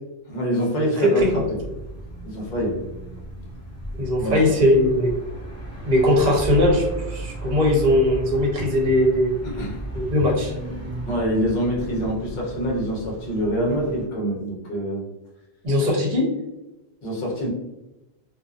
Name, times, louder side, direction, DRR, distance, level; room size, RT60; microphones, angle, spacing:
voice 1, 0.3-1.6 2.2-2.8 4.2-4.5 9.4-9.8 11.0-15.1 17.0-17.5, equal, 50° left, -2 dB, 0.8 m, -25 dB
sound 1, 1.2-14.1, right 1 dB, 15° left, 0.8 m, -35 dB
voice 2, 4.0-5.1 5.9-9.3 9.9-10.5 15.6-16.3, left 1 dB, 45° right, -1 dB, 0.7 m, -19 dB
2.6 x 2.1 x 2.3 m, 0.99 s
omnidirectional pair, 1.1 m